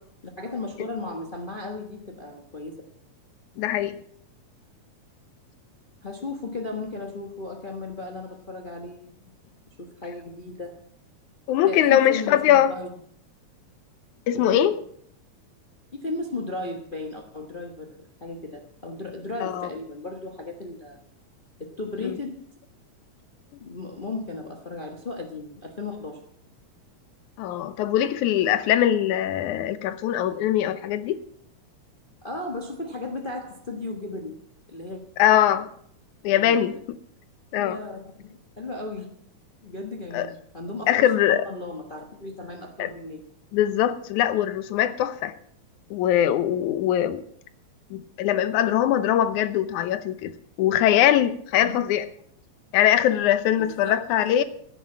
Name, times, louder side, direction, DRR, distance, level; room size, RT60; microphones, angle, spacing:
voice 1, 0.4-2.8 6.0-9.3 9.8-10.9 11.7-12.9 14.3-14.6 15.9-21.0 21.6-22.5 23.6-26.2 32.2-34.3 34.7-35.0 36.3-36.6 37.6-39.1 39.6-43.3 51.6-51.9 53.6-54.0, left 2 dB, 70° left, 2 dB, 0.5 m, -35 dB
voice 2, 3.6-4.0 11.5-12.7 14.3-14.8 19.4-19.7 22.0-22.2 27.4-31.2 35.2-35.7 36.2-36.8 37.5-37.8 40.1-40.3 40.9-41.5 42.8-42.9 43.5-45.3 45.9-47.2 47.9-50.3 50.6-52.1 52.7-54.4, left 11 dB, 90° left, 13 dB, 2.3 m, -22 dB
15.5 x 7.9 x 7.3 m, 0.65 s
omnidirectional pair, 3.3 m